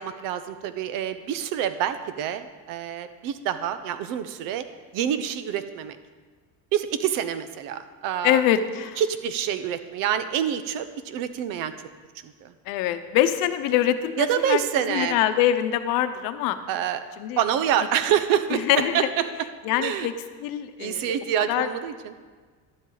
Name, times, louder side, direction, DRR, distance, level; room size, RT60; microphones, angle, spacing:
voice 1, 0.0-4.6 4.9-6.0 6.7-8.4 9.0-11.7 12.2-12.5 14.2-15.2 16.7-17.0 17.4-19.3 19.8-20.1 20.8-22.1, right 9 dB, 65° right, 11 dB, 0.9 m, -27 dB
voice 2, 8.2-9.0 12.7-14.6 14.9-16.6 17.2-17.4 18.5-19.1 19.6-20.1 20.4-21.1 21.5-21.7, left 11 dB, 70° left, 10 dB, 0.9 m, -24 dB
11.5 x 10.5 x 4.0 m, 1.5 s
cardioid pair, 160°, 35 cm